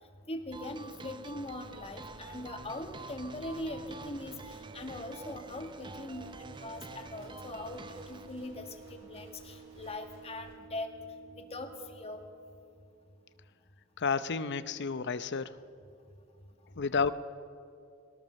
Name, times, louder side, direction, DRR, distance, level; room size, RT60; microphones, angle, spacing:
voice 1, 0.3-10.9 11.4-12.2, left 1 dB, 30° left, 5 dB, 1.9 m, -41 dB
sound 1, 0.5-8.3, right 3 dB, 25° right, 0.6 m, -48 dB
Livestock farm animals working animals, 1.4-10.5, right 1 dB, 70° right, 6.0 m, -58 dB
sound 2, 2.2-13.5, right 6 dB, 45° right, 1.5 m, -54 dB
voice 2, 14.0-15.6 16.8-17.1, left 5 dB, 55° left, 13 dB, 0.7 m, -31 dB
22.0 x 18.5 x 6.5 m, 2.4 s
head